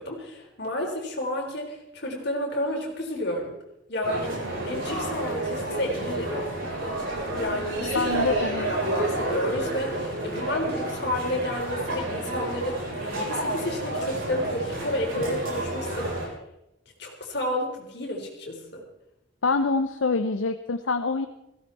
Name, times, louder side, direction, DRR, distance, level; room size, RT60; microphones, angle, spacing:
voice 1, 0.0-3.5 3.9-4.3 4.6-6.5 7.3-8.2 8.6-16.1 17.0-18.8, left 1 dB, 55° left, 0 dB, 4.1 m, -31 dB
sound 1, 4.0-16.3, right 1 dB, 80° right, 7.5 m, -30 dB
voice 2, 7.9-8.7 19.4-21.3, left 4 dB, 75° left, 8 dB, 0.8 m, -25 dB
17.5 x 16.0 x 4.2 m, 0.85 s
head